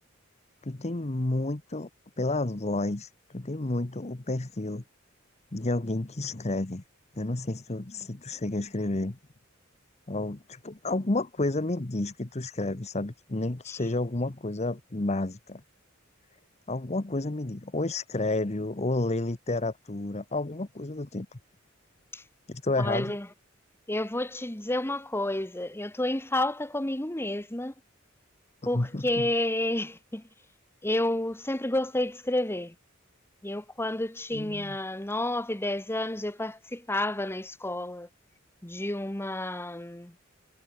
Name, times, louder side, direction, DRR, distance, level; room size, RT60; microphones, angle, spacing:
voice 1, 0.6-1.9 2.2-4.8 5.5-6.8 7.1-9.2 10.1-15.6 16.7-21.4 22.5-23.2 28.7-29.3 34.3-34.8, left 2 dB, 35° left, 1.0 m, -30 dB
voice 2, 22.8-23.3 23.9-27.7 28.6-30.2 30.8-32.7 33.4-38.1 38.6-40.1, left 1 dB, 10° left, 1.2 m, -30 dB
head